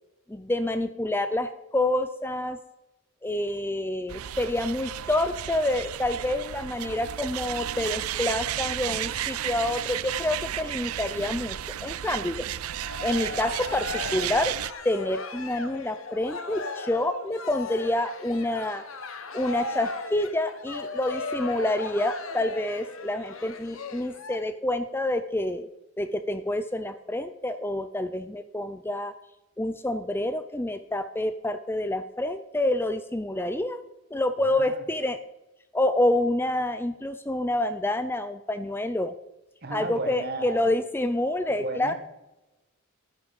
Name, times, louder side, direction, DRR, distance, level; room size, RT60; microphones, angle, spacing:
voice 1, 0.3-2.6 3.2-11.6 11.8-12.5 13.0-14.5 14.8-18.8 19.3-25.7 26.0-29.1 29.6-33.8 34.1-35.2 35.7-39.1 39.7-41.9, left 1 dB, 10° left, 11 dB, 0.5 m, -28 dB
sound 1, 4.1-14.7, right 11 dB, 90° right, 0.4 m, -33 dB
Cheering, 12.6-24.4, left 3 dB, 70° left, 1.3 m, -37 dB
voice 2, 34.5-34.8 39.6-40.7 41.6-41.9, right 2 dB, 50° right, 8 dB, 1.6 m, -34 dB
12.0 x 9.8 x 5.3 m, 0.98 s
head